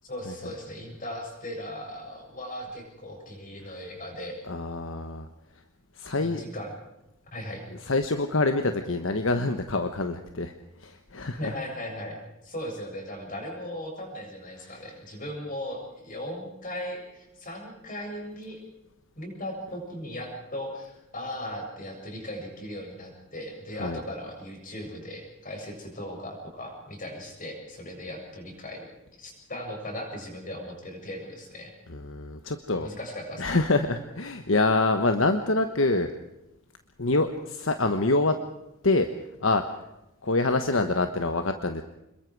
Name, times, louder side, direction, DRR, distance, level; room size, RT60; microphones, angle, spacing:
voice 1, 0.0-4.4 6.2-6.7 7.3-7.6 11.3-18.6 19.2-28.9 29.2-31.7 32.8-33.6, left 1 dB, 40° left, 1 dB, 7.4 m, -38 dB
voice 2, 4.5-5.3 6.0-6.4 7.9-10.5 10.8-11.6 14.6-14.7 23.8-24.0 31.9-32.9 33.4-36.1 37.0-38.4 38.8-39.1 39.4-39.6 40.2-41.8, left 2 dB, 70° left, 7 dB, 1.3 m, -25 dB
27.0 x 22.0 x 4.8 m, 0.91 s
head